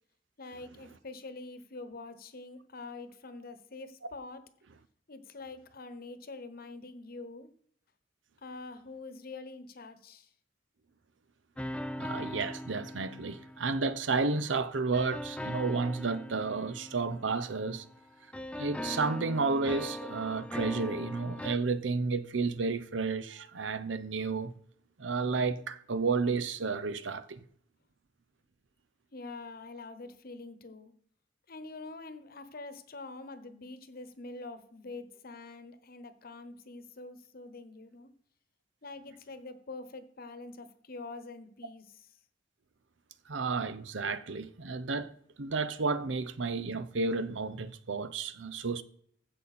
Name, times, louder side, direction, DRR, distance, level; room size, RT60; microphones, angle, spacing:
voice 1, 0.4-4.4 5.1-7.5 8.4-10.3 29.1-30.9 31.5-38.1 38.8-42.1, left 3 dB, 55° left, 1.0 m, -45 dB
sound 1, 11.6-14.2 14.9-18.0 18.3-21.6, left 1 dB, 5° left, 0.5 m, -40 dB
voice 2, 12.0-17.8 18.6-24.5 25.0-27.4 43.3-45.1 45.4-48.8, right 4 dB, 80° right, 0.8 m, -32 dB
15.5 x 5.6 x 4.3 m
head